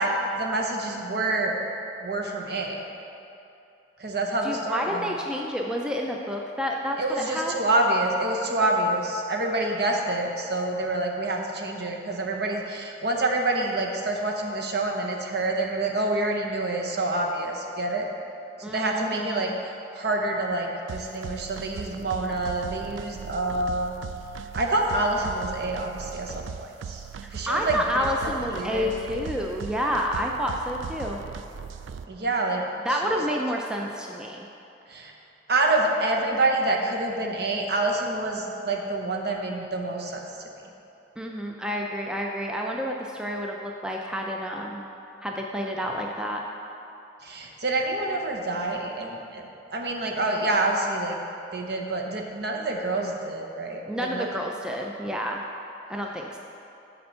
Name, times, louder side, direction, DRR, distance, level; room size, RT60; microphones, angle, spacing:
voice 1, 0.0-1.6 2.0-2.8 4.0-5.1 7.0-18.1 18.6-19.5 19.9-24.0 24.5-27.0 27.3-27.8 28.2-29.0 32.1-32.6 32.9-33.4 34.9-35.1 35.5-40.3 47.2-51.2 51.5-54.3, right 2 dB, 60° right, 1 dB, 0.8 m, -27 dB
voice 2, 4.4-7.5 18.6-19.5 27.5-31.2 32.8-34.5 41.2-44.9 45.2-46.4 53.9-55.4 55.9-56.4, equal, 5° right, 0 dB, 0.4 m, -29 dB
sound 1, 20.9-32.1, right 6 dB, 85° right, 0.3 m, -38 dB
6.8 x 4.3 x 6.6 m, 2.8 s
head